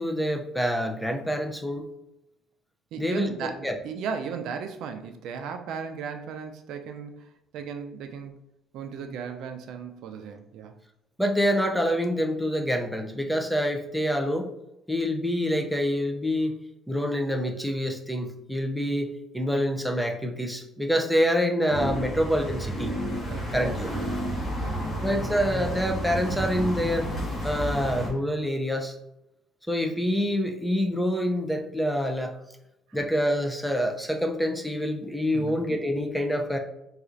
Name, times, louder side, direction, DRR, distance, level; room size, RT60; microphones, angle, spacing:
voice 1, 0.0-1.9 3.0-3.7 11.2-14.5 14.9-16.5 16.9-22.9 23.5-23.9 25.0-27.1 27.4-29.0 29.7-32.4 32.9-36.6, equal, ahead, 0.4 m, -26 dB
voice 2, 2.9-7.3 7.5-8.3 8.7-10.8 23.2-25.0 32.9-33.0 35.3-35.6, right 6 dB, 70° right, 0.4 m, -36 dB
sound 1, 21.7-28.1, equal, 30° left, 1.2 m, -31 dB
4.1 x 2.4 x 2.5 m
cardioid pair, 120°, 0 cm